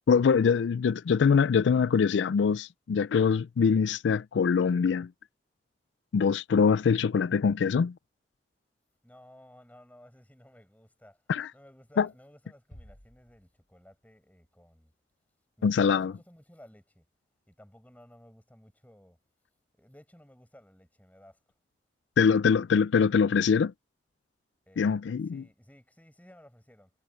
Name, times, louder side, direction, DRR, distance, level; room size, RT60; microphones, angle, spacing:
voice 1, 0.1-5.1 6.1-7.9 11.3-11.5 12.0-12.1 15.6-16.1 22.2-23.7 24.8-25.4, left 6 dB, 80° left, 0.4 m, -23 dB
voice 2, 9.0-11.2 11.5-14.9 15.6-17.0 17.5-19.2 19.8-21.4 24.7-24.9 25.3-26.9, equal, 10° left, 6.5 m, -56 dB
sound 1, 12.7-14.3, equal, 45° left, 7.9 m, -55 dB
head